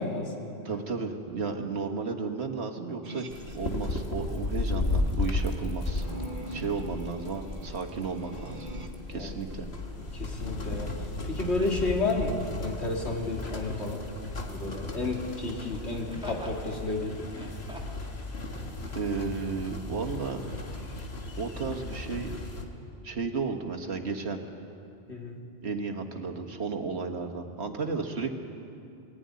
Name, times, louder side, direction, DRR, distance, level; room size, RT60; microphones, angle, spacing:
voice 1, 0.0-0.5 6.5-6.6 9.1-9.3 10.2-10.9 11.3-14.0 14.5-17.2 25.1-25.4, left 2 dB, 90° left, 0 dB, 2.8 m, -31 dB
voice 2, 0.6-3.3 3.5-6.0 6.5-8.7 9.1-9.7 18.9-20.4 21.4-22.3 23.0-24.4 25.6-28.3, right 4 dB, 80° right, 4 dB, 1.8 m, -33 dB
sound 1, 3.0-3.7 5.9-8.9, right 2 dB, 50° right, 1.4 m, -43 dB
sound 2, 3.3-22.6, left 2 dB, 70° left, 2.0 m, -35 dB
Laughter, 13.1-13.5 15.8-16.6 17.2-18.1 18.8-18.9, equal, 5° right, 2.3 m, -44 dB
21.5 x 15.5 x 9.6 m, 2.6 s
omnidirectional pair, 1.1 m